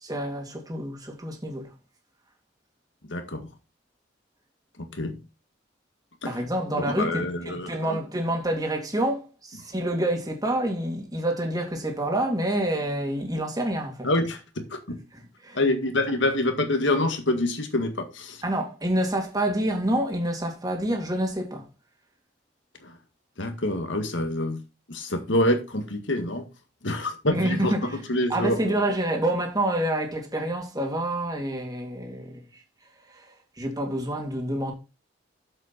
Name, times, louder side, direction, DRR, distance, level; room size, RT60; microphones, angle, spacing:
voice 1, 0.0-1.7 6.3-14.1 15.4-15.6 18.4-21.6 27.3-28.0 28.3-32.4 33.1-34.7, right 1 dB, 20° right, 2.4 m, -27 dB
voice 2, 3.1-3.5 4.8-5.2 6.2-6.4 6.8-8.0 14.0-15.0 15.5-18.4 22.8-22.9 23.4-24.6 24.9-26.4 26.8-27.7 28.1-28.7, left 1 dB, 75° left, 1.8 m, -26 dB
7.7 x 7.4 x 4.4 m
head